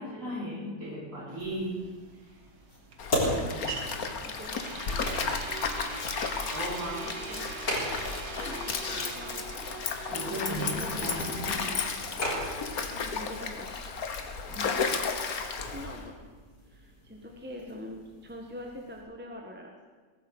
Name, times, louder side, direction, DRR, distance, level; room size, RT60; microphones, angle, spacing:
voice 1, 0.0-1.8 2.2-2.3 3.3-3.4 6.2-7.0 10.1-11.7 14.5-14.7, right 1 dB, 45° right, -4 dB, 5.5 m, -36 dB
sound 1, 1.3-15.1, right 4 dB, 90° right, 2.2 m, -43 dB
sound 2, 1.4-19.0, left 1 dB, 70° left, 4.6 m, -39 dB
Stream, 3.0-16.1, left 5 dB, 55° left, 1.7 m, -34 dB
voice 2, 3.2-4.7 7.0-7.5 8.1-11.1 12.9-13.8 15.7-16.2 16.6-19.7, equal, 5° right, 1 dB, 1.4 m, -44 dB
18.0 x 9.7 x 8.1 m, 1.4 s
omnidirectional pair, 1.9 m